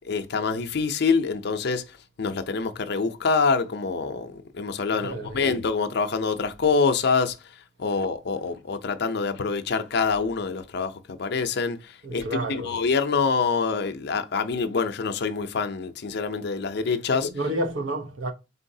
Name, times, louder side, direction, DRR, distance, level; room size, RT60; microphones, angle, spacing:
voice 1, 0.1-1.8 2.2-7.4 7.8-11.8 12.1-17.3, left 4 dB, 55° left, 0.5 m, -25 dB
voice 2, 4.9-5.5 12.0-12.7 17.2-18.3, right 1 dB, 70° right, 0.8 m, -30 dB
4.1 x 3.8 x 2.7 m
head